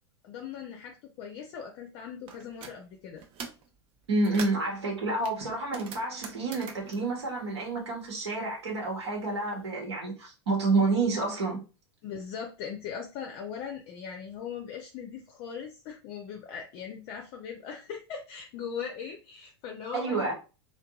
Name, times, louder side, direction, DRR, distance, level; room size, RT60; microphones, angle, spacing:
voice 1, 0.2-3.2 12.0-20.3, left 7 dB, 45° left, 0.5 m, -40 dB
sound 1, 2.3-2.8 3.2-3.7 4.0-4.7 5.2-8.2 8.4-9.6, right 6 dB, 40° right, 0.6 m, -44 dB
voice 2, 4.1-11.6 19.9-20.3, right 3 dB, 75° right, 1.1 m, -29 dB
2.6 x 2.2 x 2.3 m
hypercardioid pair, 95°, 14 cm